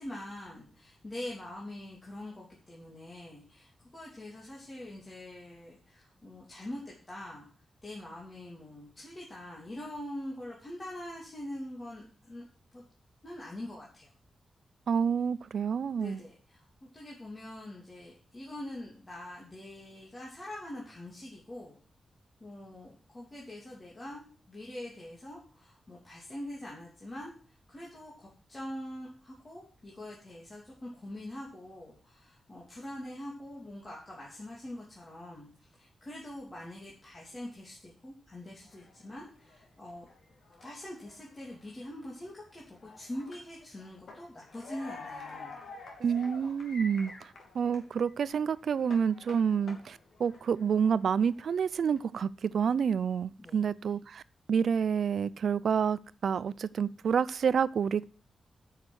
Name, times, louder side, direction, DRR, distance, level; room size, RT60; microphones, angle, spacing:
voice 1, 0.0-7.5 7.8-12.5 12.7-12.8 13.2-14.1 16.0-16.6 16.9-21.8 22.4-27.3 27.7-35.5 35.8-40.1 40.6-45.6 53.4-53.6, left 1 dB, 20° left, -4 dB, 2.9 m, -44 dB
voice 2, 14.9-16.2 46.0-47.1 47.5-54.2 54.5-58.0, right 7 dB, 65° right, 19 dB, 0.5 m, -28 dB
sound 1, 38.6-47.9 48.2-52.0, left 3 dB, 65° left, 3.2 m, -49 dB
9.7 x 6.6 x 7.7 m, 0.39 s
wide cardioid pair, 175°, 0 cm